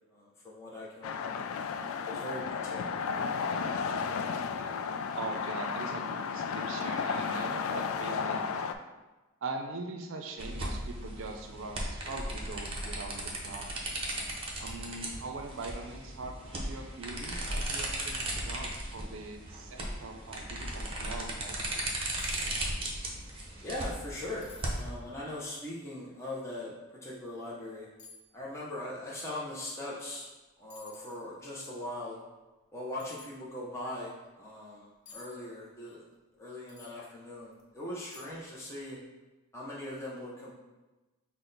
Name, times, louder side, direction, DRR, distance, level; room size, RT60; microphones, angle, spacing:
voice 1, 0.1-1.5 2.0-3.0 23.6-27.9 28.3-30.3 30.6-32.2 32.7-36.0 36.4-39.0 39.5-40.5, left 1 dB, 15° left, -6 dB, 0.6 m, -40 dB
sound 1, 1.0-8.7, left 5 dB, 85° left, 0.3 m, -33 dB
voice 2, 5.1-8.4 9.4-13.6 14.6-21.6, right 3 dB, 65° right, 4 dB, 0.5 m, -41 dB
sound 2, 10.4-24.9, right 1 dB, 25° right, 0.7 m, -37 dB
sound 3, 22.2-22.5 22.8-23.3 23.7-23.8 24.4-24.8 25.5-25.6 27.1-27.2 28.0-28.3 30.1-30.3 30.7-31.2 33.0-33.3 35.1-35.3 36.7-37.0 37.5-37.6 38.1-38.5 38.8-38.9, left 4 dB, 60° left, 0.7 m, -51 dB
6.0 x 2.1 x 3.9 m, 1.1 s
head